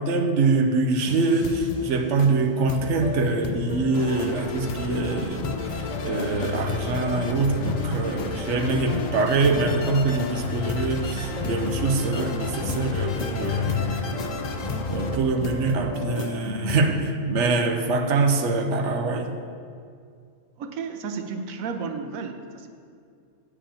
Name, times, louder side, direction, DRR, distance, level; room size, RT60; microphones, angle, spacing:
voice 1, 0.0-14.0 14.9-19.3, right 3 dB, 65° right, 6 dB, 1.1 m, -24 dB
sound 1, 1.0-16.8, left 3 dB, 55° left, 0.4 m, -32 dB
sound 2, 3.9-15.2, left 4 dB, 75° left, 1.2 m, -33 dB
voice 2, 20.6-22.7, right 5 dB, 85° right, 5 dB, 1.1 m, -33 dB
8.8 x 5.1 x 7.1 m, 2.2 s
omnidirectional pair, 1.4 m